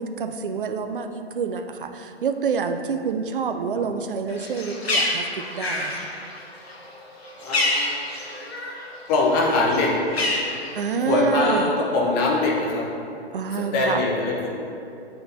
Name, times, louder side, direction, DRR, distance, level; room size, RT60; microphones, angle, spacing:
voice 1, 0.0-5.3 5.5-6.1 10.7-11.7 13.3-14.0, right 5 dB, 55° right, 7 dB, 0.5 m, -27 dB
Bird, 4.3-8.9 9.2-11.1, left 1 dB, 65° left, 1.2 m, -27 dB
voice 2, 7.4-8.0 9.1-9.9 11.0-12.8 13.7-14.5, left 2 dB, 20° left, -3 dB, 0.7 m, -22 dB
7.7 x 5.7 x 2.6 m, 2.6 s
figure-of-eight pair, 125°, 33 cm